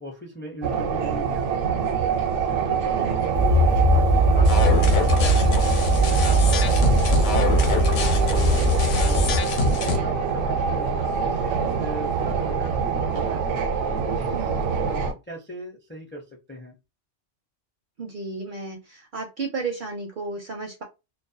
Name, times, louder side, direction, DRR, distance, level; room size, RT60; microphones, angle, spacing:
voice 1, 0.0-1.5 2.0-4.1 4.3-6.6 7.0-9.2 9.6-13.5 13.9-16.7, right 1 dB, 15° left, 1 dB, 0.4 m, -39 dB
sound 1, 0.6-15.1, right 6 dB, 85° right, 0.9 m, -25 dB
sound 2, 3.3-9.4, equal, 55° left, 0.7 m, -20 dB
sound 3, 4.4-10.0, left 5 dB, 90° left, 0.9 m, -28 dB
voice 2, 18.0-20.8, right 3 dB, 60° right, 2 dB, 0.5 m, -33 dB
2.3 x 2.1 x 2.6 m, 0.25 s
omnidirectional pair, 1.2 m